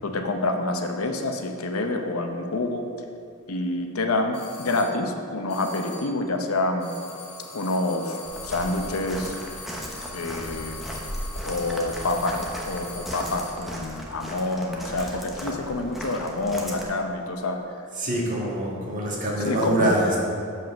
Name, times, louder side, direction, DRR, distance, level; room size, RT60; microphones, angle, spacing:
voice 1, 0.0-2.9 3.5-6.9 7.5-9.4 10.1-10.8 11.4-17.6 19.4-19.9, left 2 dB, 75° left, 5 dB, 0.7 m, -27 dB
sound 1, 4.3-5.0 5.5-6.2 6.8-13.7, left 3 dB, 50° left, 1.8 m, -42 dB
Walk footsteps, 8.2-16.8, equal, ahead, 0.9 m, -36 dB
voice 2, 17.9-20.2, right 1 dB, 40° right, -3 dB, 1.6 m, -24 dB
7.4 x 5.5 x 6.0 m, 2.4 s
head